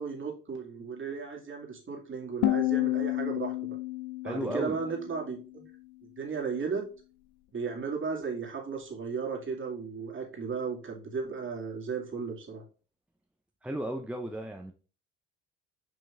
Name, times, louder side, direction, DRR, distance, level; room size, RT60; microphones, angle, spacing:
voice 1, 0.0-3.8 4.2-5.7 6.2-6.8 7.5-12.6, right 5 dB, 35° right, 2.4 m, -35 dB
sound 1, 2.4-5.4, left 17 dB, 60° left, 0.9 m, -30 dB
voice 2, 4.2-4.8 13.6-14.7, right 1 dB, 5° right, 0.8 m, -34 dB
5.8 x 5.2 x 3.5 m
hypercardioid pair, 60°, 36 cm